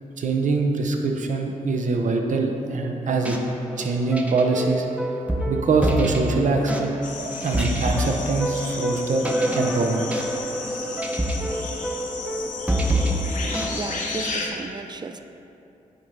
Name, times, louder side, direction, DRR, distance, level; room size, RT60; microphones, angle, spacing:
voice 1, 0.2-3.4 3.8-4.9 5.5-6.9 7.2-10.1 13.3-13.8, right 3 dB, 65° right, 3 dB, 0.7 m, -24 dB
sound 1, 3.1-14.6, right 1 dB, 10° right, 0.7 m, -27 dB
sound 2, 7.0-14.5, left 4 dB, 65° left, 0.8 m, -34 dB
voice 2, 13.7-15.2, right 3 dB, 30° right, 8 dB, 0.4 m, -34 dB
9.1 x 4.0 x 3.4 m, 2.9 s
cardioid pair, 60°, 14 cm